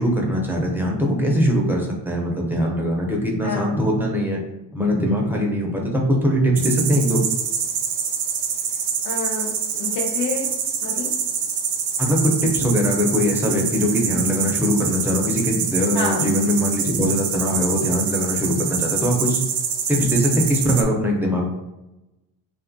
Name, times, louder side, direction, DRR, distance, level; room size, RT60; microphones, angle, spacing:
voice 1, 0.0-4.4 4.7-7.2 12.0-19.4 19.9-21.5, equal, 5° right, -2 dB, 0.4 m, -21 dB
voice 2, 3.4-3.8 9.0-10.5 10.8-11.1 15.9-16.3, left 3 dB, 60° left, -3 dB, 0.6 m, -28 dB
sound 1, 6.6-20.8, right 7 dB, 65° right, 0.5 m, -25 dB
2.6 x 2.3 x 2.5 m, 0.97 s
cardioid pair, 95°, 45 cm